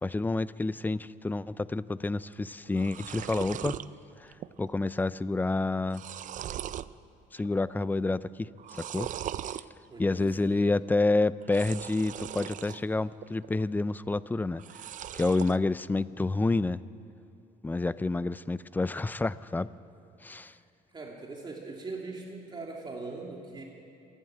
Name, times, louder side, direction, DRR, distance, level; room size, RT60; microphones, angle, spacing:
voice 1, 0.0-3.8 4.2-6.0 7.3-9.1 10.0-14.6 15.1-16.8 17.6-19.7 20.2-20.5, left 2 dB, 10° left, 17 dB, 0.4 m, -29 dB
sound 1, 2.3-2.4 2.6-3.9 4.3-4.7 5.0-5.1 5.6-6.9 7.4-7.8 8.6-9.6 11.4-12.8 13.2-13.8 14.5-15.6, right 11 dB, 50° right, 0.5 m, -39 dB
voice 2, 9.9-10.5 12.6-12.7 20.4-20.6 20.9-23.6, right 3 dB, 25° right, -1 dB, 2.6 m, -41 dB
26.5 x 11.0 x 9.0 m, 2.8 s
cardioid pair, 110°, 17 cm